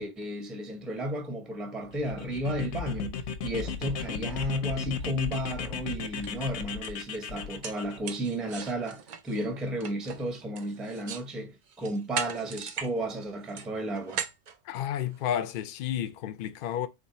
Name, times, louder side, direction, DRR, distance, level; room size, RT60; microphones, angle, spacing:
voice 1, 0.0-3.2 3.4-14.2, right 1 dB, ahead, 0.5 m, -33 dB
sound 1, 1.9-8.0, left 6 dB, 85° left, 0.9 m, -36 dB
sound 2, 5.8-5.9 6.2-6.4 6.8-6.9 7.4-11.3 11.7-12.9 13.2-15.3, right 7 dB, 55° right, 0.5 m, -39 dB
voice 2, 14.7-16.9, left 10 dB, 60° left, 0.6 m, -31 dB
3.6 x 2.4 x 4.1 m
omnidirectional pair, 1.2 m